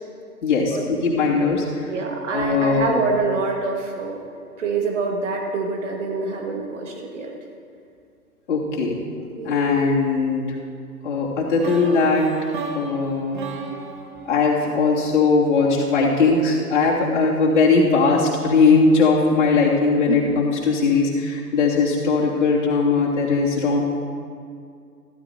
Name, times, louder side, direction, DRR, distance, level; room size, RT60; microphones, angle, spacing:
voice 1, 0.4-1.9 2.3-3.0 8.5-9.0 9.4-10.5 11.0-12.3 12.7-13.4 14.2-23.8, left 4 dB, 50° left, -5 dB, 2.8 m, -19 dB
voice 2, 1.9-4.2 4.6-7.3 9.4-9.5 20.1-20.3, right 4 dB, 50° right, 1 dB, 1.9 m, -26 dB
sound 1, 11.6-15.6, right 4 dB, 30° right, 0.8 m, -35 dB
15.0 x 14.0 x 2.9 m, 2.3 s
figure-of-eight pair, 125°, 46 cm